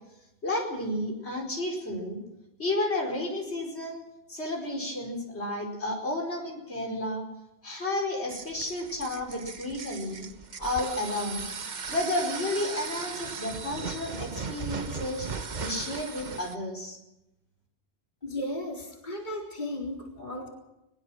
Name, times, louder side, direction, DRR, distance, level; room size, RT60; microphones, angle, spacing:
voice 1, 0.4-2.2 2.6-4.0 4.3-7.2 7.6-10.3 10.6-11.4 11.9-15.3 15.6-17.0, left 1 dB, 80° left, 0 dB, 5.0 m, -32 dB
sound 1, 8.3-16.6, right 5 dB, 45° right, 1.1 m, -37 dB
voice 2, 18.2-20.5, left 1 dB, 45° left, -1 dB, 4.1 m, -35 dB
21.5 x 21.5 x 6.3 m, 0.89 s
omnidirectional pair, 1.1 m